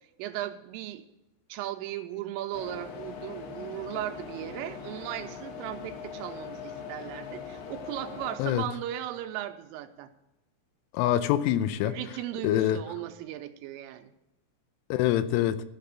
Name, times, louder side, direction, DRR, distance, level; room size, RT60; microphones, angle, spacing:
voice 1, 0.2-1.0 1.5-10.1 11.8-14.1, right 13 dB, 85° right, 3.2 m, -37 dB
sound 1, 2.5-8.4, left 6 dB, 65° left, 3.2 m, -41 dB
voice 2, 10.9-12.0 12.4-12.8 14.9-15.6, left 12 dB, 80° left, 3.0 m, -25 dB
13.0 x 5.8 x 8.1 m
omnidirectional pair, 5.9 m